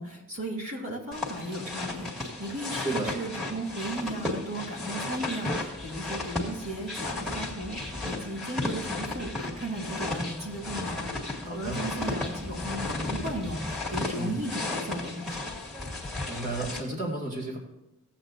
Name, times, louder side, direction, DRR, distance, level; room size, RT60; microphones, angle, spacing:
voice 1, 0.0-11.1 11.4-15.5, right 1 dB, 65° right, -1 dB, 2.5 m, -36 dB
sound 1, 1.1-16.8, left 2 dB, ahead, 2.1 m, -34 dB
voice 2, 2.8-3.2 11.4-11.8 14.1-14.4 16.3-17.6, right 2 dB, 35° right, -2 dB, 2.4 m, -33 dB
16.0 x 8.5 x 2.7 m, 1.0 s
head